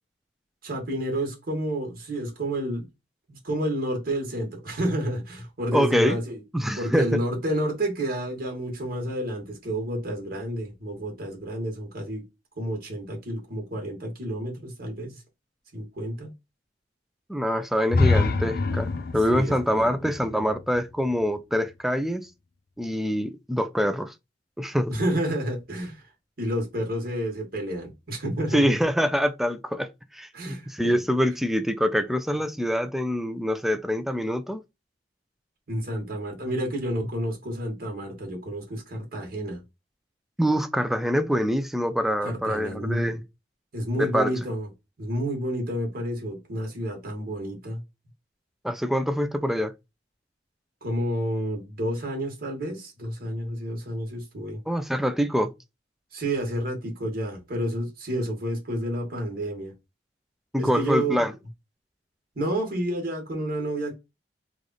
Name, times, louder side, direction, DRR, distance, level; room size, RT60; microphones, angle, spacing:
voice 1, 0.6-2.9 3.3-6.4 6.8-12.2 12.6-15.2 15.7-16.3 19.3-19.9 24.9-26.1 26.4-28.8 30.3-31.0 35.7-39.6 42.2-43.2 43.7-44.7 45.0-47.8 50.8-54.6 56.1-59.7 60.6-61.2 62.4-63.9, right 1 dB, 60° right, 1.4 m, -30 dB
voice 2, 5.7-6.2 6.5-7.2 17.3-22.3 22.8-24.1 24.6-24.9 28.5-29.9 30.1-34.6 40.4-43.2 44.0-44.3 48.6-49.7 54.7-55.5 60.5-61.3, equal, ahead, 0.4 m, -25 dB
sound 1, 17.9-21.7, left 3 dB, 60° left, 0.5 m, -26 dB
3.3 x 2.4 x 3.9 m
head